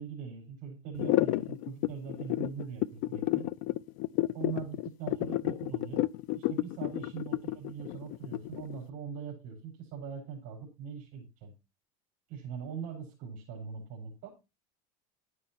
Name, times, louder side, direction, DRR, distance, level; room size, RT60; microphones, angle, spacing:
voice 1, 0.0-3.5 4.3-6.1 6.3-11.5 12.3-14.3, right 6 dB, 45° right, 1 dB, 4.6 m, -41 dB
sound 1, 1.0-8.8, left 17 dB, 55° left, 0.5 m, -30 dB
12.0 x 9.8 x 2.8 m, 0.26 s
supercardioid pair, 145°, 17 cm